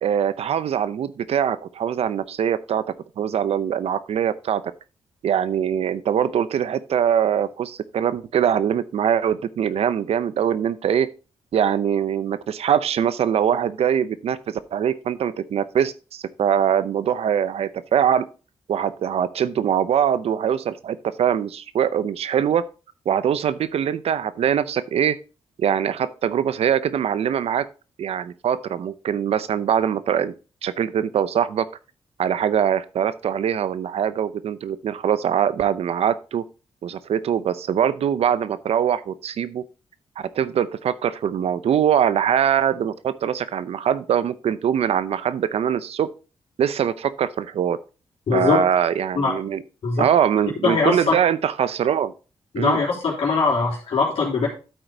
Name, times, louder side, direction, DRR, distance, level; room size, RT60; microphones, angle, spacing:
voice 1, 0.0-2.8 3.2-4.6 5.2-11.1 11.5-18.3 18.7-22.6 23.1-25.2 25.6-27.7 28.0-30.3 30.6-31.7 32.2-36.4 36.8-39.6 40.2-46.1 46.6-47.8 48.3-49.6 50.0-52.1 52.6-52.8, right 9 dB, 75° right, 15 dB, 0.6 m, -22 dB
voice 2, 48.3-48.6 49.1-49.3 49.8-50.1 50.6-51.2 52.5-54.5, left 4 dB, 70° left, -4 dB, 3.5 m, -21 dB
12.5 x 4.6 x 3.9 m, 0.34 s
cardioid pair, 65°, 10 cm